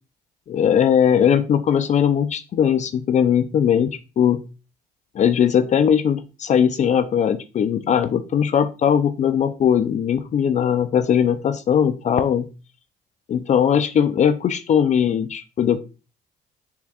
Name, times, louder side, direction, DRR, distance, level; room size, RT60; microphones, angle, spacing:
voice 1, 0.5-4.5 5.1-12.5 13.3-15.8, left 8 dB, 45° left, 11 dB, 0.5 m, -19 dB
6.8 x 6.3 x 2.4 m, 0.32 s
cardioid pair, 110°, 17 cm